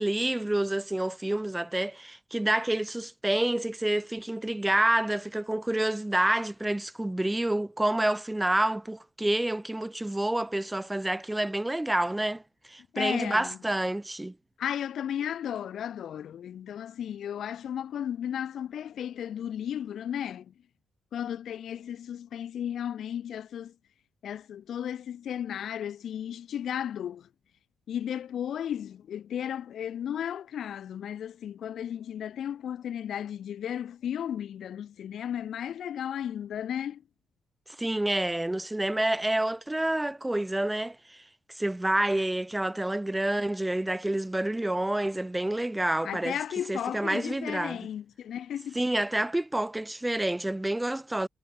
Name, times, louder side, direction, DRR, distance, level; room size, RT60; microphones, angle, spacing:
voice 1, 0.0-12.4 12.7-14.3 37.8-41.2 41.5-46.4 46.7-47.8 48.8-51.3, right 1 dB, 10° right, 0.5 m, -28 dB
voice 2, 12.9-13.6 14.6-20.5 21.1-23.7 24.2-27.3 27.9-37.0 46.0-48.8, left 9 dB, 70° left, 0.4 m, -34 dB
cardioid pair, 80°, 0 cm